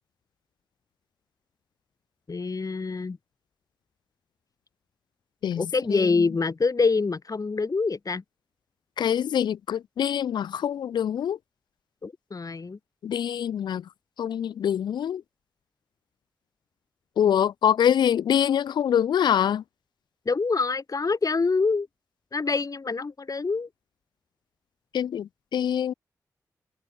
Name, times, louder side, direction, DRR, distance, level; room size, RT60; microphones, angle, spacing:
voice 1, 2.3-3.2 5.6-8.2 12.0-12.8 20.3-21.9 22.3-23.7, left 4 dB, 55° left, 7.7 m, -25 dB
voice 2, 5.4-6.0 9.0-11.4 13.0-13.8 14.2-15.2 17.2-19.6 24.9-25.9, left 9 dB, 90° left, 5.3 m, -24 dB
supercardioid pair, 40°, 7 cm